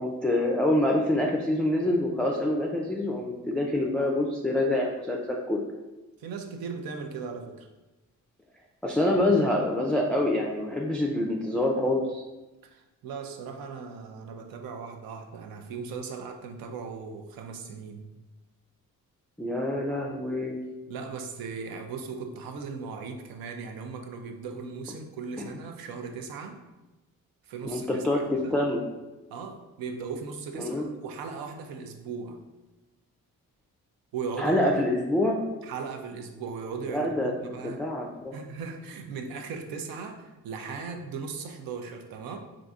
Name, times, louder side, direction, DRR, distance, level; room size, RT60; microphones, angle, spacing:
voice 1, 0.0-5.6 8.8-12.2 19.4-20.6 25.4-25.5 27.6-28.8 30.6-30.9 34.4-35.4 36.9-37.3 37.6-38.3, left 1 dB, 5° left, -1 dB, 0.3 m, -26 dB
voice 2, 6.2-7.7 12.6-18.1 20.9-26.6 27.4-28.6 29.3-32.4 34.1-34.7 35.6-37.8 38.3-42.4, right 5 dB, 85° right, 5 dB, 0.5 m, -38 dB
3.9 x 2.5 x 2.4 m, 1.1 s
cardioid pair, 75°, 34 cm